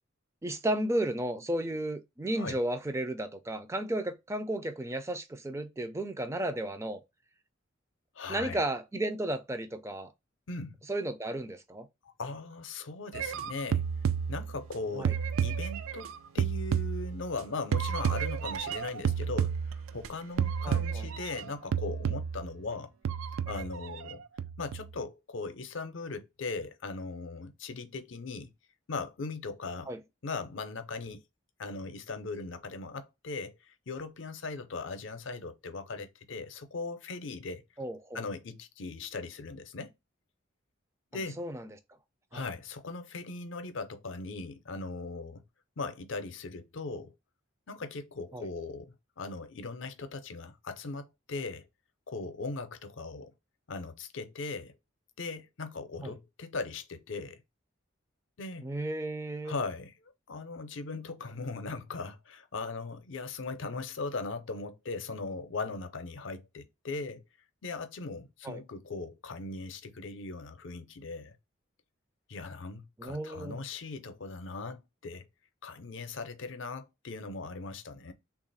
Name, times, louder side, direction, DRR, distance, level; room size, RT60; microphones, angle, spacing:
voice 1, 0.4-7.0 8.3-10.1 10.9-11.9 14.9-15.1 20.6-21.1 29.9-30.0 37.8-38.2 41.4-41.7 42.3-42.4 48.3-48.5 56.0-56.1 58.6-59.5 68.4-68.6 73.0-73.6, right 1 dB, 15° right, 0.4 m, -33 dB
voice 2, 8.2-8.6 10.5-10.7 12.0-13.8 14.3-15.1 15.4-22.9 23.5-24.2 24.6-28.5 28.9-29.9 30.2-31.2 31.6-37.7 38.1-39.9 41.1-41.4 42.3-45.4 45.8-47.1 47.7-51.7 52.1-53.3 53.7-54.7 55.2-57.4 58.4-58.7 59.4-67.2 67.6-71.4 72.3-75.3 75.6-78.1, left 3 dB, 70° left, 0.6 m, -39 dB
sound 1, 13.1-14.7 15.0-17.4 17.7-20.1 20.4-21.4 21.7-22.5 23.0-24.1 24.4-24.9, right 7 dB, 90° right, 0.3 m, -31 dB
3.3 x 2.4 x 3.9 m
head